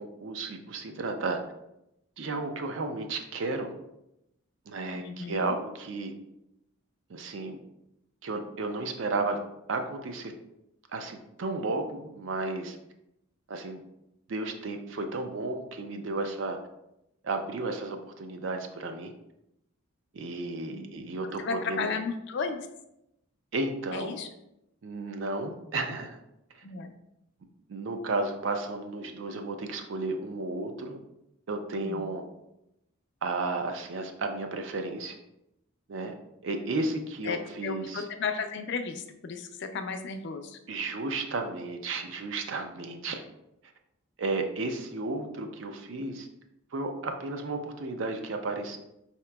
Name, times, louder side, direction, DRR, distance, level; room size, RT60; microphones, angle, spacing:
voice 1, 0.0-1.4 2.2-3.7 4.7-6.1 7.1-7.6 8.2-9.4 9.7-10.3 10.9-12.8 13.5-13.8 14.3-16.6 17.2-19.1 20.1-21.9 23.5-24.2 24.8-26.2 26.5-26.6 27.7-31.0 31.5-32.2 33.2-35.1 35.9-36.1 36.4-38.0 40.7-43.2 44.2-46.3 46.7-48.8, right 3 dB, 60° right, 6 dB, 0.4 m, -33 dB
voice 2, 4.9-5.6 20.7-20.9 21.4-22.6 23.9-24.3 26.6-27.0 31.8-32.1 37.2-40.6, left 5 dB, 55° left, 7 dB, 0.3 m, -34 dB
4.7 x 2.9 x 2.2 m, 0.84 s
head